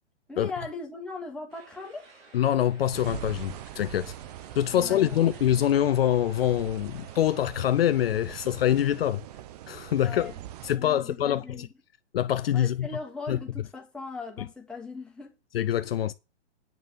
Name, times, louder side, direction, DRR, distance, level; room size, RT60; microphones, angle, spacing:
voice 1, 0.3-2.1 4.7-5.2 10.0-10.3 10.7-11.7 12.5-15.3, left 3 dB, 5° left, 2.1 m, -39 dB
sound 1, 1.5-7.8, right 3 dB, 55° right, 3.9 m, -55 dB
voice 2, 2.3-4.1 4.5-9.2 9.7-10.3 10.6-11.7 12.1-12.9 13.3-13.4 15.5-16.1, left 11 dB, 55° left, 0.7 m, -25 dB
sound 2, 2.9-10.8, right 12 dB, 35° right, 0.7 m, -42 dB
9.2 x 5.5 x 7.8 m
hypercardioid pair, 145°, 35 cm